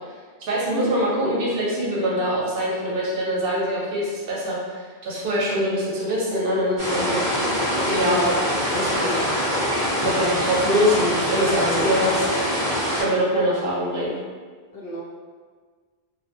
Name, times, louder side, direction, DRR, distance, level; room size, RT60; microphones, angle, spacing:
voice 1, 0.4-7.3 7.8-9.3 10.0-12.3 12.9-14.2, equal, 65° right, -5 dB, 0.8 m, -24 dB
sound 1, 6.8-13.0, equal, 15° right, 1.1 m, -24 dB
voice 2, 14.7-15.0, equal, 70° left, -4 dB, 0.8 m, -34 dB
2.6 x 2.2 x 2.5 m, 1.5 s
omnidirectional pair, 1.1 m